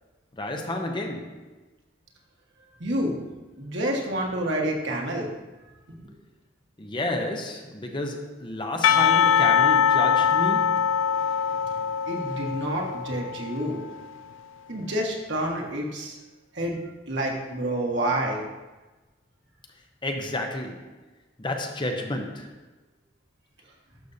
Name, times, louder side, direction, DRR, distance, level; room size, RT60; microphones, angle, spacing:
voice 1, 0.3-1.4 6.8-10.9 20.0-20.9 21.4-22.6, left 1 dB, 25° left, 0.7 m, -31 dB
voice 2, 2.8-3.2 3.6-5.3 12.1-13.9 14.7-16.2 16.5-16.8 17.1-18.4, right 1 dB, 65° right, 1.5 m, -28 dB
Percussion / Church bell, 8.8-13.9, left 8 dB, 75° left, 0.3 m, -22 dB
11.5 x 6.6 x 2.7 m
head